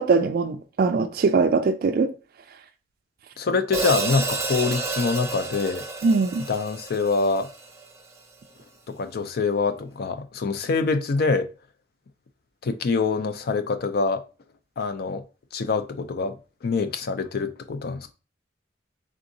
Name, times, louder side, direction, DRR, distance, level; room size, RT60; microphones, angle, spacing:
voice 1, 0.0-2.1 6.0-6.4, right 4 dB, 55° right, 0.3 m, -21 dB
voice 2, 3.4-5.9 6.5-7.5 8.9-11.5 12.6-14.2 14.8-15.2 15.5-16.4 16.6-18.1, left 4 dB, 55° left, 0.4 m, -25 dB
Hi-hat, 3.7-8.0, right 3 dB, 15° right, 0.6 m, -30 dB
3.8 x 3.6 x 2.6 m
head